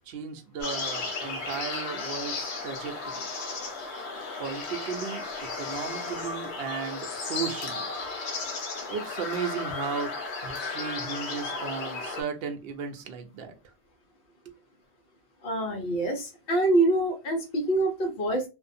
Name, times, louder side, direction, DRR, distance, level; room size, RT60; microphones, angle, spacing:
voice 1, 0.1-3.1 4.4-7.9 8.9-10.1 10.4-13.5 14.5-14.6, right 6 dB, 65° right, 0.7 m, -35 dB
sound 1, 0.6-12.2, left 3 dB, 85° left, 1.0 m, -34 dB
voice 2, 15.4-18.4, right 2 dB, 60° left, 1.0 m, -25 dB
2.5 x 2.1 x 2.5 m
omnidirectional pair, 1.1 m